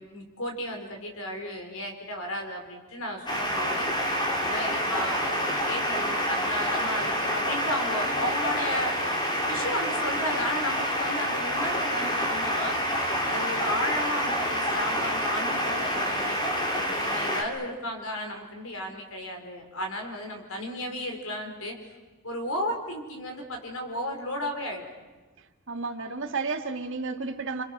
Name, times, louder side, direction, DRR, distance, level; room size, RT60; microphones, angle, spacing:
voice 1, 0.0-3.9 4.3-8.9 9.4-12.8 13.3-16.4 16.7-21.8 22.2-24.9, left 1 dB, 70° left, 3 dB, 5.0 m, -34 dB
sound 1, 3.3-17.4, equal, 20° left, 3.3 m, -28 dB
voice 2, 25.7-27.6, right 4 dB, 60° right, 4 dB, 2.3 m, -32 dB
29.5 x 26.0 x 6.2 m, 1.2 s
head